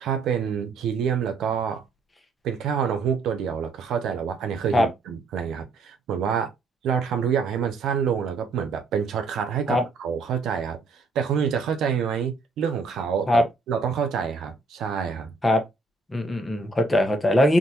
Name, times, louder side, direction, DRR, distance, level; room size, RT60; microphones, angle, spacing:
voice 1, 0.0-1.8 2.4-6.5 6.8-10.8 11.1-15.3, right 7 dB, 80° right, 0.6 m, -27 dB
voice 2, 16.1-17.6, left 1 dB, 20° left, 0.9 m, -20 dB
3.7 x 2.5 x 2.8 m
cardioid pair, 90°, 0 cm